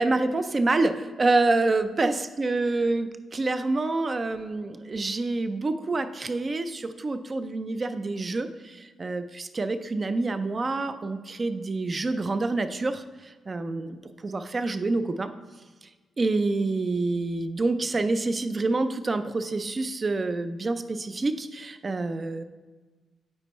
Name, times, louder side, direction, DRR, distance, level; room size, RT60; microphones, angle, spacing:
voice 1, 0.0-14.0 14.2-15.3 16.2-22.4, right 3 dB, 30° right, 10 dB, 0.4 m, -27 dB
8.7 x 4.4 x 3.0 m, 1.3 s
cardioid pair, 110°, 0 cm